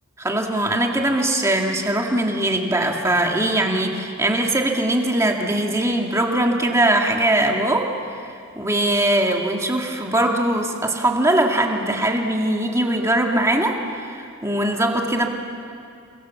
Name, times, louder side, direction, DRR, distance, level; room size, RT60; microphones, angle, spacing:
voice 1, 0.2-7.9 8.5-15.3, right 1 dB, 15° right, 1 dB, 2.2 m, -21 dB
29.0 x 24.5 x 7.2 m, 2.4 s
head